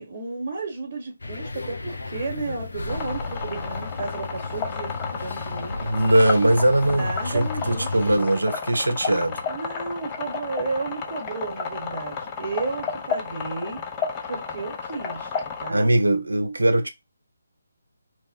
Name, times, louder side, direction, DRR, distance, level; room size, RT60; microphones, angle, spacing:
voice 1, 0.0-5.8 6.8-8.2 9.5-13.8 14.3-15.3 15.6-15.9, right 3 dB, 35° right, 1.0 m, -33 dB
sound 1, 1.2-8.2, left 3 dB, 65° left, 0.6 m, -34 dB
sound 2, 2.9-15.7, left 5 dB, 20° left, 0.5 m, -32 dB
voice 2, 5.8-9.4 15.7-16.9, right 1 dB, 80° right, 0.5 m, -21 dB
2.8 x 2.0 x 3.6 m
figure-of-eight pair, 150°, 0 cm